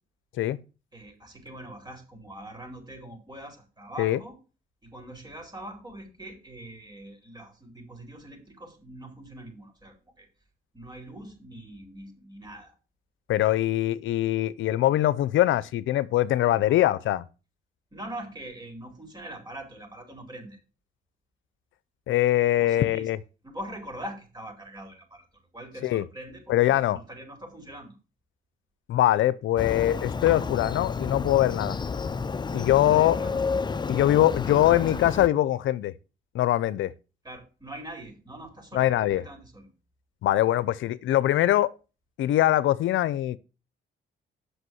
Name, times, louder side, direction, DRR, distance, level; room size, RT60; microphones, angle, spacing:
voice 1, 0.9-4.4 4.8-10.3 10.7-12.8 16.5-16.8 17.9-20.6 22.6-23.1 23.4-28.0 32.9-33.4 37.2-39.7, right 1 dB, 20° right, 4.6 m, -43 dB
voice 2, 13.3-17.3 22.1-23.2 25.8-26.0 26.5-27.0 28.9-31.8 32.5-33.2 33.9-35.9 36.3-36.9 38.7-39.2 40.2-41.7 42.2-43.4, left 14 dB, 75° left, 0.6 m, -22 dB
Motorcycle, 29.6-35.3, left 4 dB, 20° left, 0.5 m, -31 dB
8.1 x 6.2 x 7.7 m
cardioid pair, 90°, 20 cm